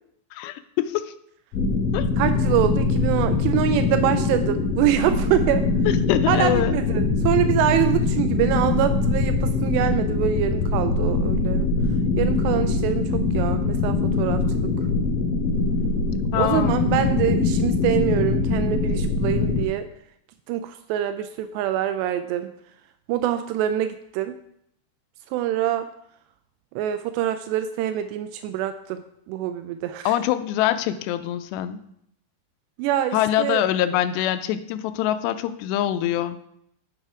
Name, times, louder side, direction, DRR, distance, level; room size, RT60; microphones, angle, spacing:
voice 1, 0.3-1.1 1.9-2.1 6.1-6.7 16.3-16.7 30.1-31.8 33.1-36.4, left 12 dB, 90° left, 11 dB, 2.7 m, -24 dB
sound 1, 1.5-19.6, left 4 dB, 55° left, 3.8 m, -23 dB
voice 2, 2.2-5.7 6.3-11.7 12.2-14.7 16.4-19.9 20.5-22.5 23.1-24.4 25.3-25.9 26.8-30.1 32.8-33.6, right 11 dB, 85° right, 10 dB, 2.7 m, -25 dB
8.9 x 8.7 x 4.8 m, 0.72 s
omnidirectional pair, 4.9 m